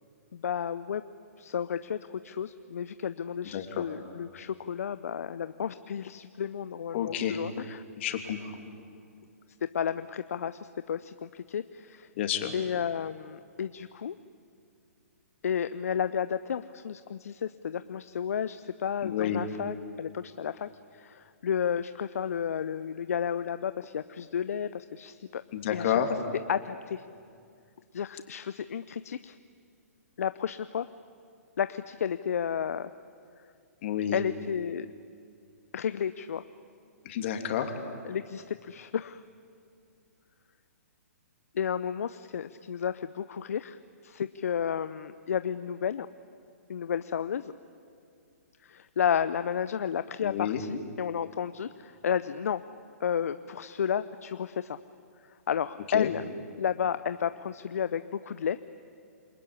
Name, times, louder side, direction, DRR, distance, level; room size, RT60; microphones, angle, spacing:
voice 1, 0.3-1.0 1.4-7.8 9.6-12.1 12.5-14.2 15.4-25.4 25.7-26.0 26.5-27.1 27.9-29.4 30.2-30.9 31.6-32.9 34.1-34.9 35.7-36.4 38.0-39.2 41.5-46.1 46.7-47.5 48.6-52.6 53.0-54.8 55.3-56.3 56.6-58.6, left 8 dB, 65° left, 13 dB, 0.7 m, -32 dB
voice 2, 3.5-3.8 6.9-7.4 8.0-8.6 12.2-12.5 19.0-19.4 25.5-26.1 33.8-34.2 37.0-37.7 50.2-50.6 55.9-56.1, left 10 dB, 50° left, 5 dB, 3.0 m, -30 dB
28.0 x 21.5 x 9.9 m, 2.4 s
hypercardioid pair, 130°, 9 cm